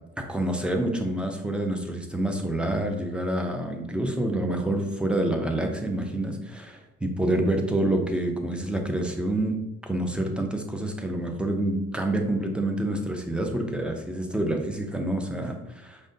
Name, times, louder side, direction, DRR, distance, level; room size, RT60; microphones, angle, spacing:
voice 1, 0.2-9.6 9.8-16.0, right 1 dB, 5° right, 3 dB, 0.5 m, -27 dB
4.9 x 2.2 x 2.6 m, 0.89 s
cardioid pair, 90°, 30 cm